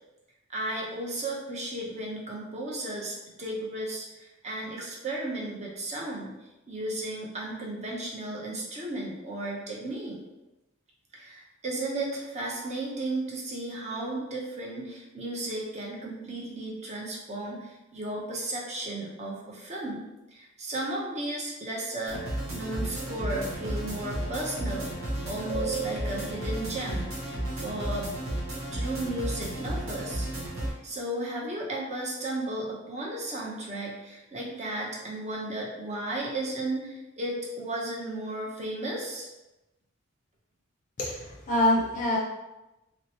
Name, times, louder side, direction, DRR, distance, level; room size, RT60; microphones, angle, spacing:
voice 1, 0.5-6.3 6.7-10.2 11.1-20.0 20.3-28.1 28.7-30.3 30.6-39.3, right 1 dB, 35° right, -3 dB, 0.7 m, -34 dB
sound 1, 22.1-30.7, right 1 dB, 90° right, 0.9 m, -33 dB
voice 2, 41.0-42.2, left 1 dB, 40° left, -4 dB, 0.5 m, -25 dB
3.1 x 2.9 x 2.9 m, 0.98 s
head